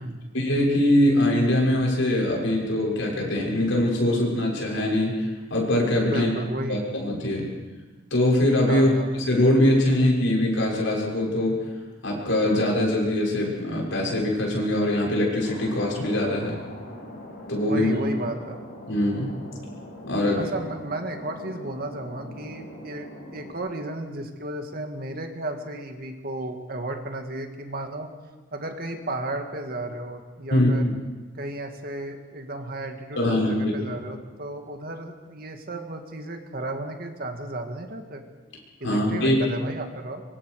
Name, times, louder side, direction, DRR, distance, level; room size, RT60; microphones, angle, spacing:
voice 1, 0.3-6.3 6.7-7.5 8.1-11.6 12.0-16.6 17.5-17.9 18.9-19.3 20.1-20.5 30.5-30.7 33.2-33.7 38.8-39.4, left 1 dB, 70° left, -2 dB, 6.7 m, -22 dB
voice 2, 6.1-6.8 8.7-9.1 17.7-18.6 20.3-23.1 23.3-28.1 28.5-30.9 31.4-38.2 38.8-40.2, right 1 dB, 45° right, 5 dB, 2.0 m, -33 dB
Thunder, 15.4-23.5, left 1 dB, 50° left, 5.8 m, -42 dB
24.5 x 24.0 x 4.9 m, 1.3 s
head